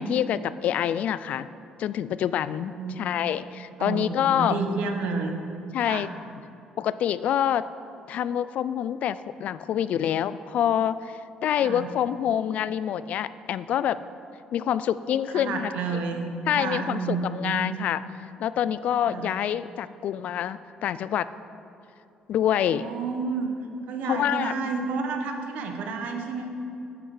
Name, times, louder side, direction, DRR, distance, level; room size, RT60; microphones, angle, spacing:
voice 1, 0.0-1.5 1.8-4.6 5.7-6.1 6.8-7.7 8.1-14.0 14.5-15.7 16.5-18.0 18.4-21.3 22.3-22.9 24.0-24.5, left 10 dB, 65° left, 15 dB, 0.3 m, -26 dB
voice 2, 3.8-5.4 5.8-6.1 11.6-11.9 15.3-17.7 19.1-19.3 22.6-23.5 23.9-26.5, right 4 dB, 75° right, 4 dB, 1.1 m, -30 dB
9.7 x 7.9 x 4.9 m, 2.7 s
cardioid pair, 120°, 3 cm